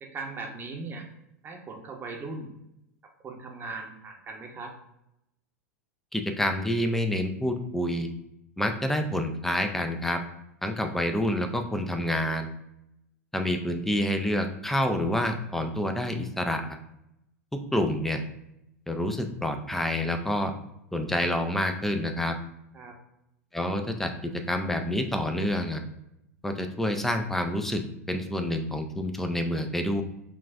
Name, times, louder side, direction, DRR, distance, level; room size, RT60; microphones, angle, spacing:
voice 1, 0.0-1.1 1.4-2.5 3.2-4.8 22.7-22.9, right 3 dB, 25° right, 2 dB, 0.8 m, -39 dB
voice 2, 6.1-8.1 8.6-10.2 10.6-12.5 13.3-16.8 17.7-18.2 18.9-20.5 20.9-22.3 23.5-25.8 26.4-27.8 28.1-30.0, left 1 dB, 5° left, 6 dB, 0.4 m, -28 dB
5.6 x 2.4 x 2.5 m, 0.83 s
figure-of-eight pair, 90°, 8 cm